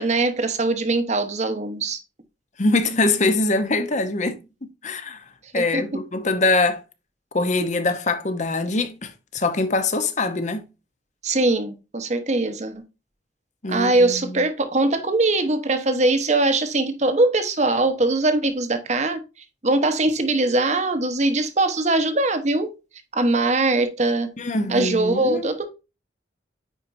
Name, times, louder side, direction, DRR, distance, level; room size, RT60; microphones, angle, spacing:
voice 1, 0.0-2.0 5.5-6.0 11.2-12.8 13.7-19.2 19.6-22.7 23.1-24.3 24.7-25.7, right 2 dB, 40° right, 1.0 m, -21 dB
voice 2, 2.6-5.2 5.5-6.8 7.3-10.6 13.6-14.4 24.4-25.5, left 2 dB, 40° left, 0.9 m, -23 dB
9.3 x 4.5 x 2.6 m
head